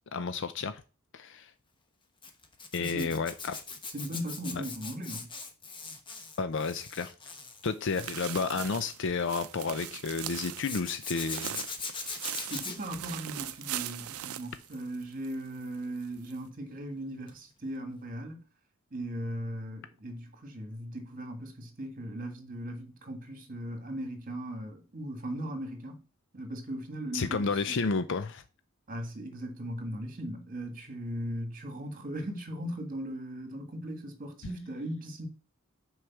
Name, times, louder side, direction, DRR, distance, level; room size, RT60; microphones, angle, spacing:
voice 1, 0.1-0.8 1.1-1.5 2.7-3.6 4.5-4.6 6.4-7.1 7.6-11.6 27.1-28.4, left 4 dB, 55° left, 0.5 m, -31 dB
Zipper (clothing), 2.2-9.6 10.6-14.3 14.6-15.0 17.3-17.4 17.7-17.8, left 4 dB, 25° left, 1.0 m, -41 dB
voice 2, 2.8-3.2 3.9-5.3 12.3-18.4 18.9-26.0 26.3-27.8 28.9-35.3, right 1 dB, 40° right, 1.6 m, -38 dB
sound 1, 7.6-15.3 15.7-15.8 16.3-16.4, right 12 dB, 85° right, 0.5 m, -40 dB
6.3 x 4.8 x 5.9 m
head